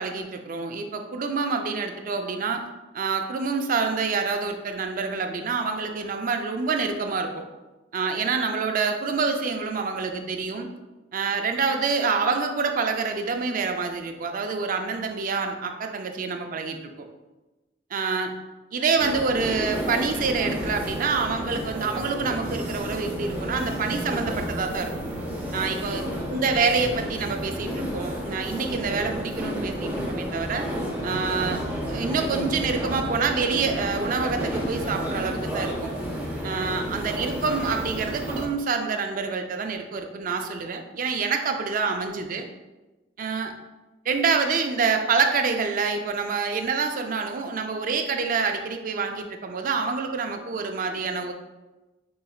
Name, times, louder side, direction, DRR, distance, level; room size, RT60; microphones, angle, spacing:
voice 1, 0.0-2.6 2.9-7.4 7.9-10.7 11.1-17.1 17.9-18.3 18.7-24.9 25.5-26.0 26.3-30.6 31.0-31.6 31.9-35.9 36.4-42.5 43.2-43.5 44.1-51.3, right 5 dB, 50° right, 5 dB, 0.4 m, -27 dB
sound 1, 19.0-38.5, equal, 10° right, 0.7 m, -31 dB
Race car auto racing, 20.0-36.6, equal, 85° left, 1.3 m, -40 dB
4.3 x 3.8 x 2.3 m, 1.1 s
head